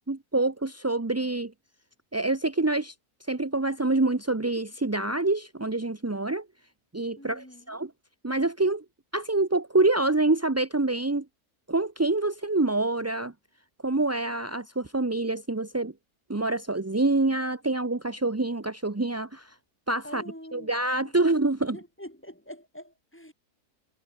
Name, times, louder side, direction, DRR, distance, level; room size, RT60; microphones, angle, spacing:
voice 1, 0.1-1.5 2.1-2.9 3.3-6.5 6.9-7.9 8.2-8.8 9.1-11.3 11.7-13.3 13.8-15.9 16.3-19.5 19.9-20.2 20.5-21.8, right 2 dB, 15° right, 0.5 m, -26 dB
voice 2, 7.2-7.8 20.0-20.7 21.0-21.2 21.7-23.3, equal, 5° left, 5.3 m, -45 dB
omnidirectional pair, 1.7 m